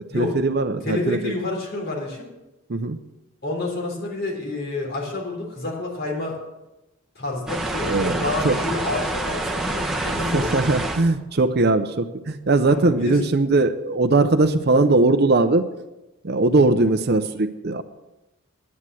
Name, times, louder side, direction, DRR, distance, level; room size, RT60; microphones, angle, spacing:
voice 1, 0.0-1.3 2.7-3.0 7.9-8.6 10.3-15.7 16.2-17.8, right 2 dB, 45° right, 10 dB, 0.6 m, -20 dB
voice 2, 0.8-2.3 3.4-6.4 7.2-10.7 12.7-13.2 16.4-16.6, left 2 dB, 45° left, -1 dB, 3.5 m, -29 dB
sound 1, 7.5-11.0, right 2 dB, 5° right, 1.3 m, -27 dB
9.7 x 9.6 x 7.5 m, 1.0 s
head